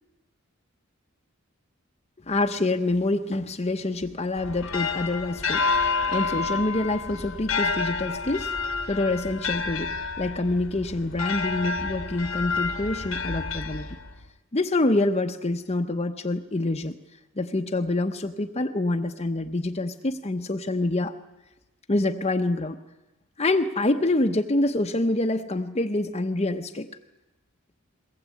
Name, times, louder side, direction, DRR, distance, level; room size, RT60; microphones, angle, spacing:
voice 1, 2.3-5.6 6.1-8.5 8.9-13.9 14.5-17.0 17.4-21.1 21.9-22.8 23.4-26.9, left 2 dB, 30° left, 4 dB, 0.8 m, -26 dB
sound 1, 4.4-14.3, left 4 dB, 75° left, 1.4 m, -29 dB
22.0 x 19.0 x 8.4 m, 1.0 s
head